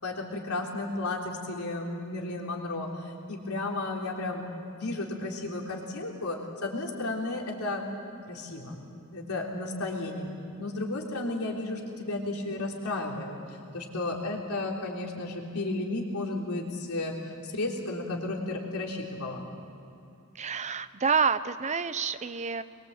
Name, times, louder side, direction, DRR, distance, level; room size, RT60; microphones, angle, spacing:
voice 1, 0.0-4.4 4.7-7.8 8.3-10.3 10.6-13.3 13.7-19.4, left 2 dB, 85° left, -1 dB, 3.6 m, -33 dB
voice 2, 20.4-22.6, right 6 dB, 30° right, 12 dB, 0.7 m, -28 dB
23.5 x 22.5 x 8.0 m, 2.6 s
head